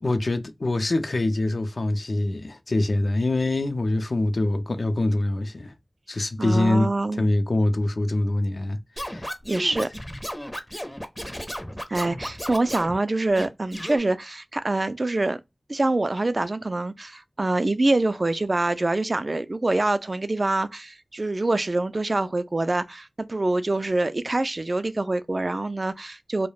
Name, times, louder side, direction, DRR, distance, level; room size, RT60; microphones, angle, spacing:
voice 1, 0.0-5.8 6.1-9.3, left 2 dB, 65° left, 0.4 m, -24 dB
voice 2, 6.4-7.3 9.5-9.9 11.9-15.4 15.7-26.5, right 2 dB, 45° right, 0.3 m, -25 dB
Scratching (performance technique), 9.0-13.0 13.3-14.0, equal, 5° left, 0.5 m, -34 dB
2.3 x 2.0 x 3.0 m
wide cardioid pair, 65°, 0 cm